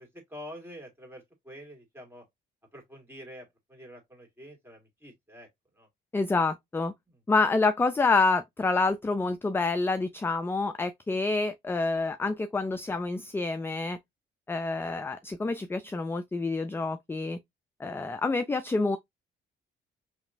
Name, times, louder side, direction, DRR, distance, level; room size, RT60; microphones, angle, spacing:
voice 1, 0.0-2.3 2.7-5.5 5.7-5.9 7.1-7.2, equal, 10° right, 2.2 m, -47 dB
voice 2, 6.1-6.9 7.3-14.0 14.5-17.4 17.8-19.0, left 3 dB, 10° left, 0.3 m, -27 dB
5.1 x 2.9 x 2.5 m
cardioid pair, 90°, 20 cm